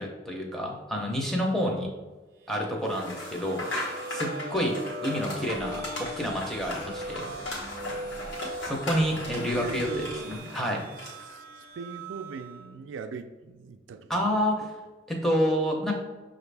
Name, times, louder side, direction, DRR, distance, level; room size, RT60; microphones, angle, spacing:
voice 1, 0.0-1.9 2.5-3.7 4.1-7.3 8.6-10.9 14.1-14.6 15.1-15.9, equal, ahead, -1 dB, 0.6 m, -28 dB
sound 1, 2.4-12.7, right 1 dB, 55° right, 0.7 m, -41 dB
sound 2, 2.9-11.4, left 2 dB, 70° left, 1.2 m, -38 dB
sound 3, 5.4-10.4, left 1 dB, 90° left, 0.9 m, -47 dB
voice 2, 9.1-10.4 11.0-14.3 14.6-14.7, right 5 dB, 90° right, 8 dB, 0.3 m, -41 dB
5.8 x 2.5 x 3.3 m, 1.2 s
head